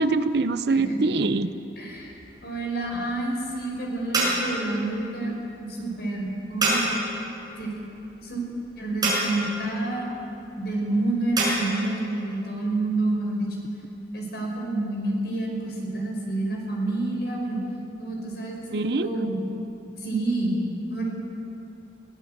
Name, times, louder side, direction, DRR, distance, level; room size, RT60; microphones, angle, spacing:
voice 1, 0.0-1.5 18.7-19.1, right 3 dB, 65° right, 12 dB, 0.7 m, -23 dB
voice 2, 0.7-1.1 1.8-2.1 2.4-5.3 5.6-6.9 7.6-7.7 8.2-8.4 8.8-10.1 10.6-13.5 14.1-17.6 18.0-19.4 20.0-20.6 20.9-21.0, right 2 dB, 65° left, -1 dB, 5.2 m, -28 dB
sound 1, 1.9-11.5, right 2 dB, 20° right, 5.8 m, -30 dB
21.0 x 16.0 x 8.1 m, 2.7 s
head